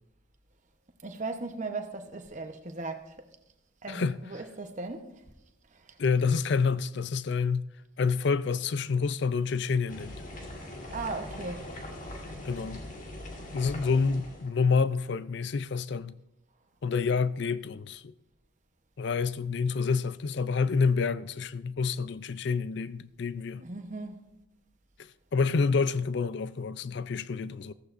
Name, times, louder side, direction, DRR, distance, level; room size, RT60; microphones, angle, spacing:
voice 1, 1.0-3.1 3.8-5.2 10.9-11.7 23.6-24.3, right 3 dB, 35° right, 0.9 m, -37 dB
voice 2, 3.9-4.2 6.0-7.7 8.0-10.2 12.2-12.9 13.5-16.2 16.8-18.1 19.0-23.6 25.0-27.7, left 5 dB, 60° left, 0.4 m, -28 dB
sound 1, 9.9-14.5, left 1 dB, 40° left, 1.9 m, -41 dB
15.0 x 14.5 x 2.6 m
head